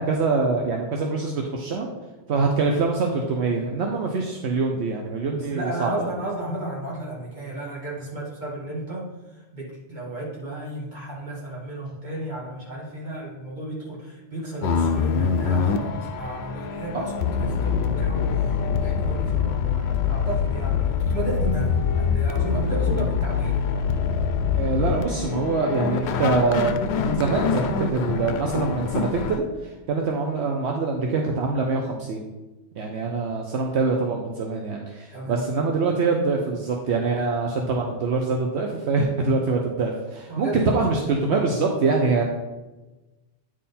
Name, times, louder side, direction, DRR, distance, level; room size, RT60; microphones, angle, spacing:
voice 1, 0.0-1.9 2.3-6.1 16.9-17.0 24.5-32.2 32.8-42.2, right 4 dB, 75° right, 1 dB, 1.0 m, -24 dB
voice 2, 5.3-18.5 18.8-23.8 35.1-35.4 40.3-41.0, right 1 dB, 40° right, -5 dB, 2.2 m, -33 dB
sound 1, 14.6-29.4, left 6 dB, 75° left, 0.8 m, -24 dB
9.1 x 3.8 x 4.2 m, 1.1 s
omnidirectional pair, 1.1 m